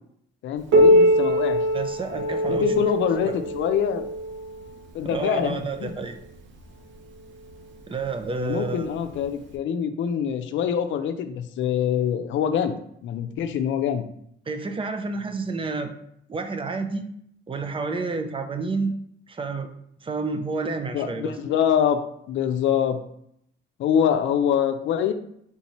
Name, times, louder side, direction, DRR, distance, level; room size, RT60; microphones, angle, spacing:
voice 1, 0.4-1.6 2.5-4.0 4.9-5.9 8.4-14.1 20.9-22.0 22.3-23.0 23.8-25.1, left 8 dB, 75° left, 8 dB, 0.5 m, -24 dB
Piano, 0.7-6.0 6.9-7.0 7.5-7.6 8.4-8.5 9.5-9.6, equal, 70° right, 0.7 m, -22 dB
voice 2, 1.7-2.8 3.2-3.3 5.0-6.2 7.9-8.9 14.5-15.9 16.3-17.1 17.5-19.0 19.3-19.7 20.0-21.4, right 4 dB, 25° right, 7 dB, 0.5 m, -29 dB
4.1 x 3.7 x 3.0 m, 0.71 s
cardioid pair, 90°, 20 cm